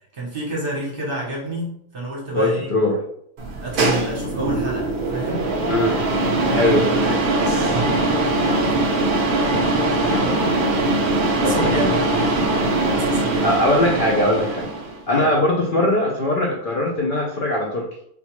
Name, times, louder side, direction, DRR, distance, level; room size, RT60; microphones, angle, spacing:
voice 1, 0.1-2.7 3.6-5.5 6.3-8.8 10.1-10.6 11.4-12.6 12.9-13.6 15.1-15.3, right 2 dB, 45° right, -4 dB, 0.9 m, -30 dB
voice 2, 2.3-3.0 5.7-6.0 6.5-6.9 9.8-10.4 11.4-11.9 13.4-14.6 15.1-17.9, left 1 dB, 80° left, -2 dB, 0.4 m, -21 dB
sound 1, 3.4-15.0, right 2 dB, 85° right, 0.4 m, -21 dB
3.9 x 2.3 x 2.9 m, 0.70 s
omnidirectional pair, 1.6 m